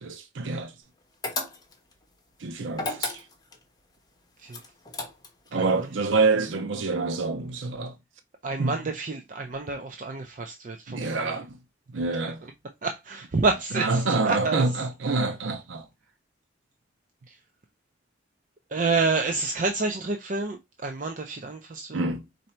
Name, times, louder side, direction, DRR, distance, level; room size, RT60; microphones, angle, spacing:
voice 1, 0.0-0.7 2.4-3.3 5.5-7.9 8.6-8.7 10.9-11.6 11.9-12.5 13.7-15.9 21.9-22.2, right 3 dB, 85° right, 0.6 m, -27 dB
sound 1, 1.2-1.9 2.7-3.6 4.5-5.5, left 3 dB, 20° left, 0.9 m, -33 dB
voice 2, 5.5-5.9 8.4-11.4 12.2-12.3 12.8-14.6 17.3-17.4 18.7-22.0, right 3 dB, 45° right, 0.5 m, -29 dB
4.3 x 2.6 x 4.3 m
head